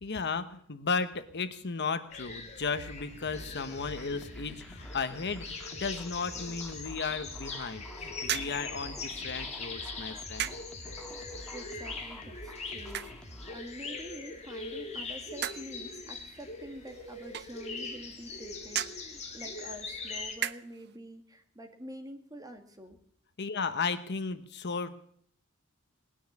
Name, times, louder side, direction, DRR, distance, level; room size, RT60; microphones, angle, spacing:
voice 1, 0.0-10.5 23.4-25.0, left 4 dB, 55° left, 11 dB, 1.0 m, -35 dB
sound 1, 2.1-20.3, left 3 dB, 30° left, 2.5 m, -42 dB
sound 2, 2.6-13.5, equal, 5° left, 1.6 m, -48 dB
sound 3, 8.2-21.0, right 11 dB, 50° right, 0.6 m, -42 dB
voice 2, 11.5-23.0, right 1 dB, 15° right, 5 dB, 1.9 m, -47 dB
19.5 x 10.0 x 7.2 m, 0.65 s
head